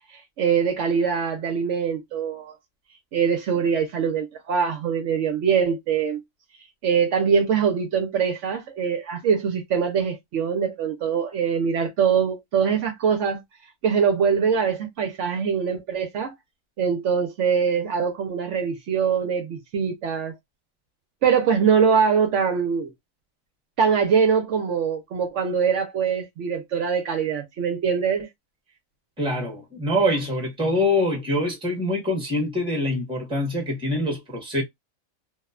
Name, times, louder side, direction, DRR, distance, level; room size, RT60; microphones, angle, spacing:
voice 1, 0.4-2.6 3.1-6.2 6.8-13.4 13.8-16.3 16.8-20.3 21.2-22.9 23.8-28.3, right 6 dB, 70° right, 0.8 m, -23 dB
voice 2, 29.2-34.6, left 1 dB, 5° right, 0.9 m, -24 dB
2.8 x 2.1 x 2.3 m
omnidirectional pair, 1.4 m